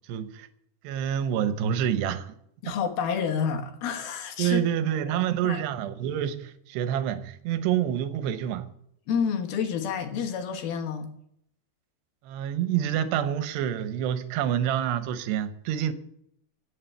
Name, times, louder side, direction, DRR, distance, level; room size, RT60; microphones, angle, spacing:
voice 1, 0.1-0.5 0.8-2.3 2.7-2.8 4.4-8.7 12.2-15.9, right 10 dB, 85° right, 3.0 m, -27 dB
voice 2, 2.6-4.6 5.1-5.6 9.1-11.1, left 7 dB, 70° left, 2.9 m, -29 dB
15.5 x 6.7 x 8.1 m
omnidirectional pair, 4.8 m